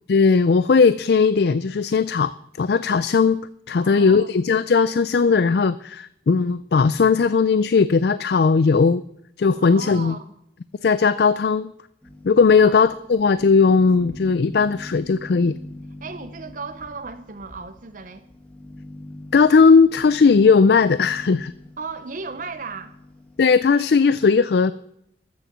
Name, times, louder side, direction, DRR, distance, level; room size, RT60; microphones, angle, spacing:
voice 1, 0.1-2.3 2.6-3.4 3.7-9.0 9.4-10.2 10.8-11.7 12.2-15.6 19.3-21.5 23.4-24.7, left 5 dB, 60° left, 15 dB, 0.4 m, -17 dB
voice 2, 3.8-4.3 9.6-10.2 12.6-12.8 16.0-18.2 21.8-22.9, right 4 dB, 45° right, 8 dB, 0.7 m, -35 dB
sound 1, 12.0-23.7, left 1 dB, 10° left, 2.0 m, -43 dB
13.5 x 7.2 x 7.4 m, 0.76 s
head